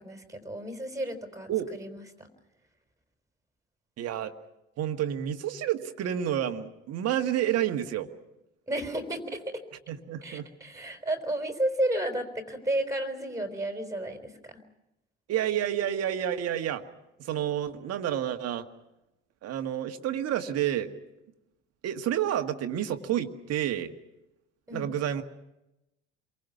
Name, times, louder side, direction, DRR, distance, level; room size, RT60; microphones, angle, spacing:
voice 1, 0.0-2.3 8.7-9.6 10.2-14.6 24.7-24.9, right 1 dB, 10° right, 6 dB, 4.1 m, -32 dB
voice 2, 4.0-4.3 4.8-8.1 9.9-10.5 15.3-16.8 17.2-18.7 19.4-20.9 21.8-23.9 24.7-25.2, right 10 dB, 45° right, 7 dB, 1.8 m, -29 dB
29.0 x 23.5 x 5.9 m, 0.91 s
figure-of-eight pair, 60°, 34 cm